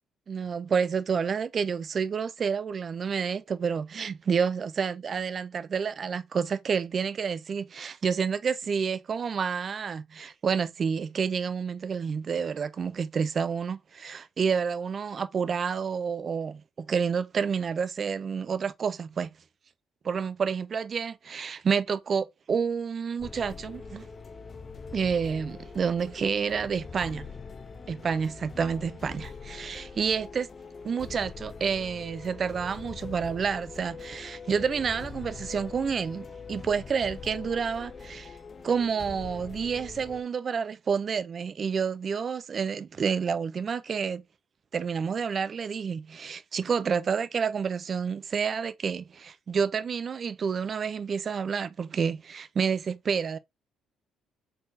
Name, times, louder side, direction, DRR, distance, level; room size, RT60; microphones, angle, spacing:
voice 1, 0.3-19.3 20.0-24.1 24.9-27.3 27.9-30.5 30.8-38.3 38.6-44.2 44.7-53.4, right 6 dB, 40° right, 0.4 m, -29 dB
sound 1, 23.2-40.2, left 5 dB, 30° left, 0.5 m, -43 dB
3.9 x 3.9 x 2.6 m
cardioid pair, 120°, 0 cm